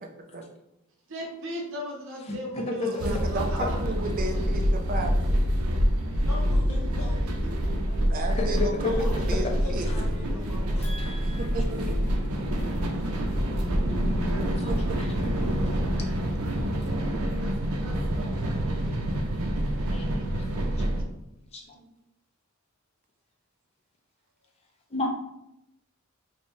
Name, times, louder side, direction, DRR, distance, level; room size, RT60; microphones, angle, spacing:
voice 1, 0.0-0.4 2.8-5.3 8.1-9.9 11.5-12.0 14.7-15.0 20.1-20.3, right 2 dB, 40° right, 4 dB, 0.5 m, -34 dB
voice 2, 1.1-3.8, equal, 60° right, 0 dB, 0.8 m, -36 dB
voice 3, 2.3-3.0 3.6-3.7 8.3-8.7 10.8-10.9 13.2-13.3 13.9-14.0 14.6-15.1 19.9-21.0 21.5-21.6 24.9-25.1, left 3 dB, 30° left, 2 dB, 0.5 m, -33 dB
sound 1, 3.0-21.0, equal, 85° right, 0.6 m, -27 dB
voice 4, 6.1-7.8 8.8-11.5 21.7-21.8, left 1 dB, 90° left, -3 dB, 1.1 m, -41 dB
sound 2, 9.7-17.5, left 2 dB, 15° right, 0.8 m, -40 dB
3.3 x 2.7 x 3.1 m, 0.85 s
head